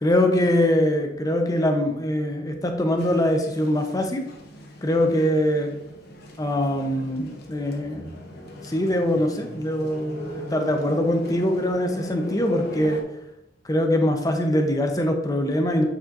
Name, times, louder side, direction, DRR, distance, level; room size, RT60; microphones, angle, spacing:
voice 1, 0.0-4.2 4.8-5.7 6.4-8.1 8.6-13.0 13.6-15.8, left 1 dB, 20° left, 4 dB, 0.7 m, -23 dB
sound 1, 3.0-13.0, left 1 dB, 60° left, 0.9 m, -39 dB
8.5 x 4.3 x 2.6 m, 0.84 s
head